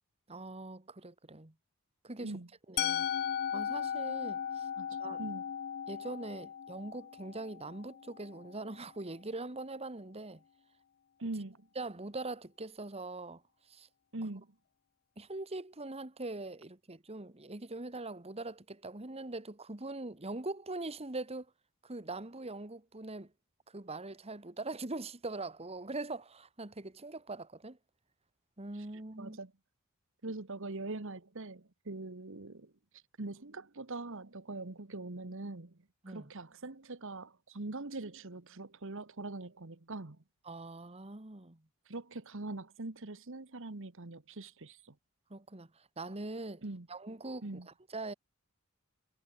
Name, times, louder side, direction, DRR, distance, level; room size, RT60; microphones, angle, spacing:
voice 1, 0.3-1.5 2.0-2.4 2.7-3.1 3.5-4.7 5.0-5.2 5.9-10.4 11.7-13.4 13.7-13.9 15.2-21.5 21.8-23.3 23.7-27.8 28.6-29.4 36.0-36.3 40.4-41.6 45.3-46.6 46.9-48.1, right 2 dB, 25° right, 1.5 m, -42 dB
Musical instrument, 2.8-8.7, left 9 dB, 45° left, 0.4 m, -37 dB
voice 2, 4.8-5.4 11.2-11.7 14.1-14.5 28.7-28.9 29.2-29.5 30.2-32.7 33.2-35.8 36.1-40.2 41.9-44.9 46.6-46.9 47.4-47.7, right 2 dB, 60° right, 1.3 m, -42 dB
head